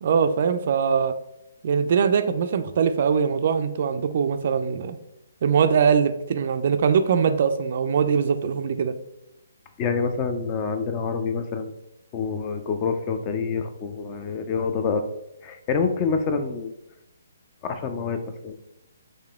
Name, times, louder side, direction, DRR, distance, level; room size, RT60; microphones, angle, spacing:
voice 1, 0.0-1.1 1.6-5.0 5.4-8.9, right 6 dB, 45° right, 9 dB, 0.3 m, -22 dB
voice 2, 9.8-11.7 12.1-15.0 15.4-16.7 17.6-18.6, left 5 dB, 25° left, 8 dB, 0.4 m, -27 dB
6.4 x 3.3 x 2.3 m, 0.90 s
figure-of-eight pair, 130°, 0 cm